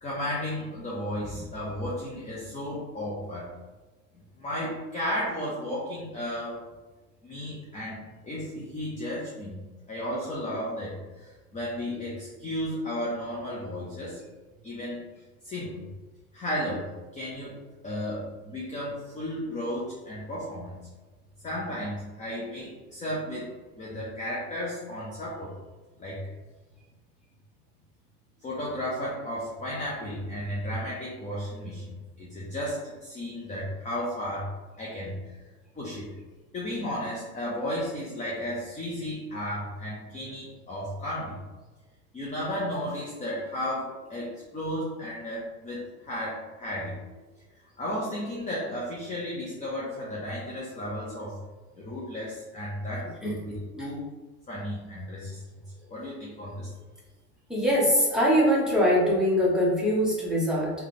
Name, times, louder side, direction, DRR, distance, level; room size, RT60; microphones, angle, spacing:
voice 1, 0.0-3.5 4.4-6.7 7.2-9.6 9.9-14.2 14.6-15.0 15.4-15.9 16.3-17.6 17.8-20.8 21.4-25.5 26.0-26.3 28.4-35.1 35.8-36.1 36.5-41.4 42.1-46.9 47.8-51.4 51.8-54.0 54.5-55.4 55.9-56.7, equal, 15° left, -5 dB, 0.6 m, -34 dB
voice 2, 57.5-60.7, equal, ahead, -5 dB, 0.9 m, -22 dB
3.2 x 2.3 x 3.9 m, 1.2 s
supercardioid pair, 115°, 43 cm